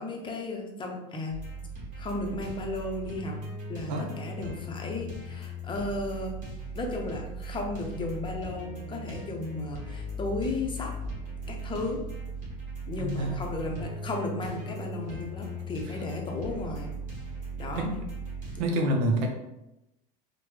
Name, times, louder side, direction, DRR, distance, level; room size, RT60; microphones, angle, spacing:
voice 1, 0.0-1.4 2.0-3.4 3.7-6.3 6.7-10.9 11.5-12.0 12.9-16.9 17.6-17.9 18.5-18.8, left 2 dB, 25° left, 1 dB, 0.6 m, -34 dB
sound 1, 1.3-18.6, right 1 dB, 40° right, 1.3 m, -38 dB
voice 2, 13.0-13.4 17.7-18.0 18.6-19.3, right 1 dB, 75° right, 2 dB, 0.5 m, -27 dB
3.1 x 2.1 x 3.1 m, 0.89 s
supercardioid pair, 105°, 21 cm